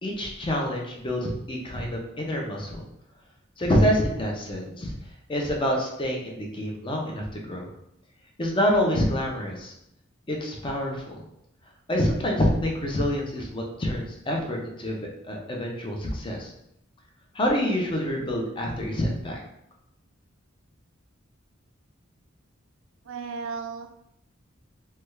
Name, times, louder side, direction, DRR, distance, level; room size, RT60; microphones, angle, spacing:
voice 1, 0.0-2.9 3.6-4.9 5.3-7.7 8.4-9.7 10.3-11.2 11.9-16.5 17.3-19.4, equal, 25° left, 0 dB, 0.5 m, -27 dB
voice 2, 23.0-24.0, right 5 dB, 80° right, 6 dB, 0.4 m, -35 dB
3.2 x 2.2 x 3.2 m, 0.79 s
head